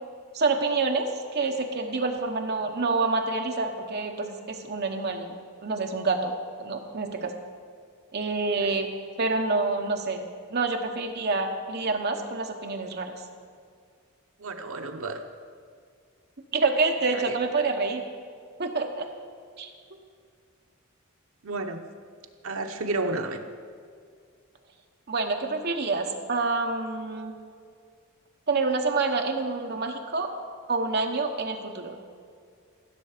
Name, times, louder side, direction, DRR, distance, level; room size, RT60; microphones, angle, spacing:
voice 1, 0.3-5.3 5.6-6.3 6.6-7.3 8.1-8.9 9.2-10.2 10.5-13.1 16.5-18.0 18.6-19.1 19.6-19.7 25.1-27.3 28.5-30.3 30.7-32.0, right 3 dB, 50° right, 3 dB, 1.0 m, -27 dB
voice 2, 14.4-15.2 17.1-17.3 17.6-17.7 21.4-21.8 22.4-23.4, right 2 dB, 75° right, 5 dB, 0.9 m, -31 dB
15.5 x 6.5 x 5.1 m, 2.2 s
head